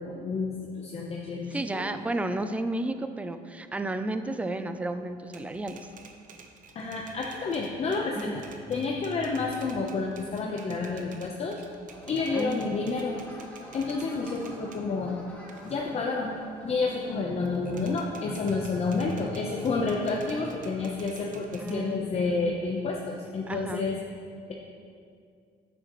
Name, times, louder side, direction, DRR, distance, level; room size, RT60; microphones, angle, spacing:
voice 1, 0.0-1.8 6.7-8.4 8.7-11.6 12.1-13.2 13.7-15.2 15.6-16.3 16.6-24.0, left 3 dB, 35° left, -1 dB, 0.8 m, -30 dB
voice 2, 1.5-5.9 8.2-8.4 12.3-12.8 21.6-22.2 23.5-23.9, right 2 dB, 10° right, 9 dB, 0.4 m, -32 dB
Typewriter, 5.2-14.9 15.3-17.1 17.4-21.7, right 5 dB, 50° right, 0.9 m, -51 dB
sound 1, 11.9-20.9, left 1 dB, 10° left, 1.9 m, -48 dB
10.5 x 9.1 x 3.1 m, 2.3 s
cardioid pair, 110°, 17 cm